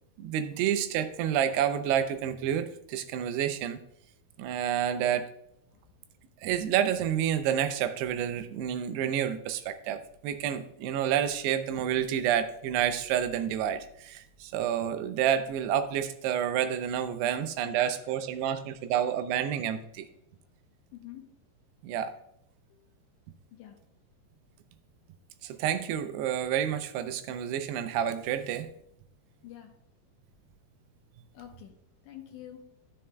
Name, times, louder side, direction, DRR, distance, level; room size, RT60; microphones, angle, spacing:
voice 1, 0.2-3.8 4.4-5.3 6.4-20.1 21.8-22.1 25.4-28.7, right 9 dB, 90° right, 10 dB, 2.7 m, -29 dB
voice 2, 20.9-21.2 22.7-22.9 23.5-23.8 29.4-29.7 31.3-31.7 32.0-32.7, left 12 dB, 85° left, 1 dB, 1.7 m, -47 dB
13.0 x 7.0 x 2.2 m, 0.74 s
omnidirectional pair, 4.6 m